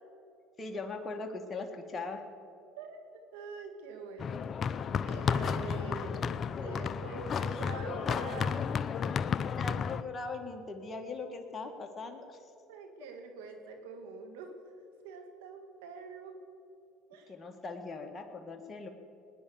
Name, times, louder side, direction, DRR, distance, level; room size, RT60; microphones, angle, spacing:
voice 1, 0.6-2.2 9.6-12.4 17.3-18.9, left 3 dB, 25° left, 3 dB, 1.8 m, -40 dB
voice 2, 2.8-4.4 5.1-6.3 6.6-8.6 12.7-14.5 15.0-16.3 17.1-17.3, right 4 dB, 85° right, 5 dB, 2.1 m, -44 dB
sound 1, 4.2-10.0, left 6 dB, 40° left, 0.6 m, -32 dB
19.0 x 10.0 x 7.1 m, 2.7 s
supercardioid pair, 90°, 0 cm